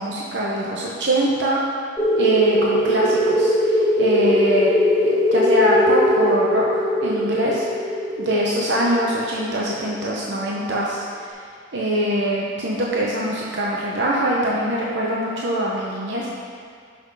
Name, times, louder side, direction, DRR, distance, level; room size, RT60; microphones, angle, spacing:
voice 1, 0.0-1.6 2.2-4.7 5.0-6.6 7.0-7.7 8.2-11.3 11.7-16.3, right 1 dB, 65° right, -4 dB, 0.9 m, -23 dB
sound 1, 2.0-10.3, left 1 dB, 5° left, 1.6 m, -20 dB
6.1 x 6.0 x 5.5 m, 2.2 s
head